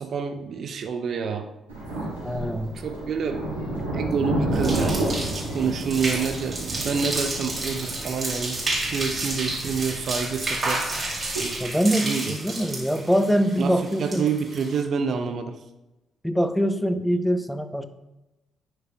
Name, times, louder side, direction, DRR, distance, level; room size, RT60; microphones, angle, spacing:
voice 1, 0.0-1.5 2.7-3.5 3.9-10.8 12.0-12.3 13.6-15.6, right 5 dB, 55° right, 7 dB, 0.5 m, -28 dB
Thunder, 1.7-11.7, right 2 dB, 85° right, 2.8 m, -31 dB
voice 2, 2.2-2.7 11.6-14.2 16.2-17.8, equal, 5° left, 9 dB, 0.7 m, -23 dB
sound 1, 4.5-14.8, right 2 dB, 35° right, 2.9 m, -31 dB
11.0 x 6.6 x 2.3 m, 0.98 s
figure-of-eight pair, 40°, 0 cm